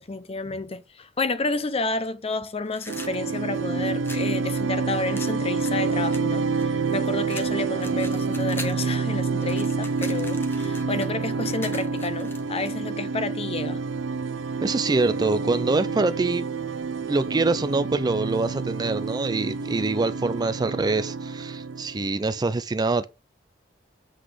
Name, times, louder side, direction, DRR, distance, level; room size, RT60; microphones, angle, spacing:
voice 1, 0.0-6.5 6.9-13.8, left 3 dB, 30° left, 0.6 m, -30 dB
sound 1, 2.7-4.3 5.1-6.9 7.3-8.9 9.2-12.7, left 2 dB, 10° left, 0.9 m, -42 dB
sound 2, 2.9-22.4, right 4 dB, 85° right, 0.6 m, -28 dB
voice 2, 14.6-16.4 17.1-23.1, right 3 dB, 20° right, 0.4 m, -25 dB
7.8 x 4.0 x 4.9 m
head